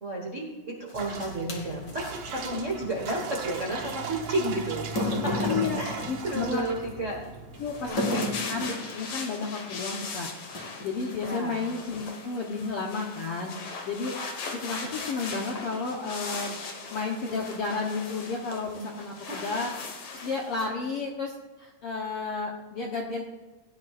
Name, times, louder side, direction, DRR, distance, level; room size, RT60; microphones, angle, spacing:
voice 1, 0.0-7.2 7.9-8.2 11.3-11.6 19.3-19.6, right 1 dB, 75° right, -2 dB, 0.6 m, -32 dB
sound 1, 0.9-2.2 3.9-4.0 4.8-6.9 8.0-8.9 9.8-10.0 10.5-11.0, left 2 dB, 40° left, 1.6 m, -31 dB
sound 2, 0.9-7.9, right 5 dB, 60° right, 1.8 m, -38 dB
voice 2, 5.4-6.6 7.6-8.2 8.5-14.1 14.5-16.6 16.9-19.7 20.2-23.2, left 4 dB, 75° left, 0 dB, 1.3 m, -32 dB
sound 3, 7.5-20.7, left 4 dB, 55° left, 1.6 m, -39 dB
17.0 x 10.0 x 2.5 m, 1.2 s
omnidirectional pair, 4.0 m